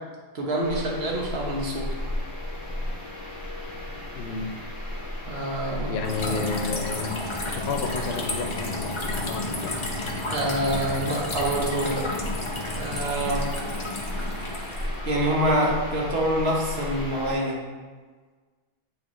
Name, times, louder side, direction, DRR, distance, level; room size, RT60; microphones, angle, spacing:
voice 1, 0.3-1.9 5.3-5.9 6.2-6.4 7.6-7.7 10.3-12.1 12.7-13.5 15.0-17.6, right 1 dB, 75° right, -2 dB, 1.3 m, -26 dB
sound 1, 0.6-17.4, left 1 dB, 50° left, 1.7 m, -35 dB
voice 2, 4.1-4.6 5.7-7.2 7.5-9.8, left 4 dB, 90° left, 6 dB, 0.9 m, -31 dB
sound 2, 6.0-15.0, left 2 dB, 30° left, 0.7 m, -32 dB
8.5 x 3.8 x 3.0 m, 1.5 s
omnidirectional pair, 1.1 m